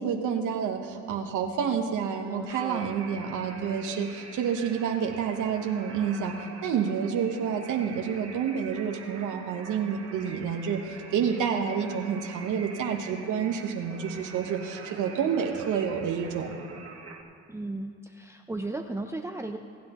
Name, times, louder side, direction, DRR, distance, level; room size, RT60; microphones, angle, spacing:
voice 1, 0.0-16.6, right 7 dB, 85° right, 3 dB, 1.2 m, -29 dB
voice 2, 2.2-2.9 17.5-19.6, right 2 dB, 10° right, 4 dB, 0.6 m, -35 dB
sound 1, 2.5-17.2, right 4 dB, 55° right, 1.7 m, -45 dB
26.0 x 9.5 x 3.0 m, 2.4 s
cardioid pair, 90°, 30 cm